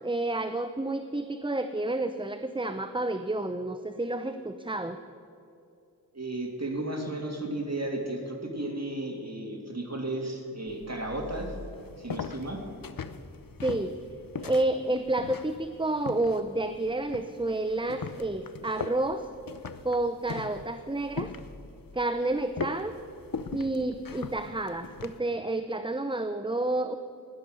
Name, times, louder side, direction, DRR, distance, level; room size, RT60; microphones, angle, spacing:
voice 1, 0.0-5.0 13.6-14.0 14.4-19.3 19.8-21.3 21.9-22.9 23.5-27.0, right 2 dB, 15° right, 9 dB, 0.6 m, -30 dB
voice 2, 6.1-11.5 12.0-12.6, right 1 dB, 45° right, 1 dB, 2.5 m, -34 dB
sound 1, 10.7-25.2, left 5 dB, 65° left, 0.7 m, -41 dB
16.5 x 10.5 x 6.5 m, 2.6 s
wide cardioid pair, 45°, 37 cm